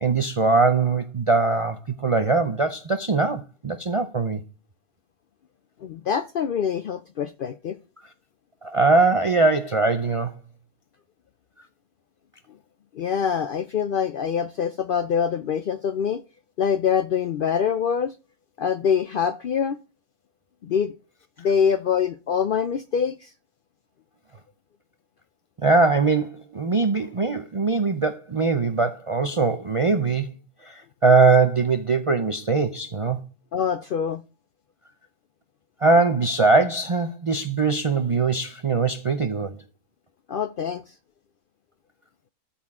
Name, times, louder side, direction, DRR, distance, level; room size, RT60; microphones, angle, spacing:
voice 1, 0.0-4.4 8.6-10.3 25.6-30.3 30.6-33.2 35.8-39.6, right 3 dB, 45° right, 0.4 m, -21 dB
voice 2, 5.8-7.8 12.9-16.2 16.6-18.2 18.6-19.8 20.6-20.9 21.4-23.3 26.9-27.1 33.5-34.2 40.3-40.9, left 7 dB, 65° left, 0.5 m, -25 dB
13.0 x 4.3 x 3.6 m
omnidirectional pair, 1.4 m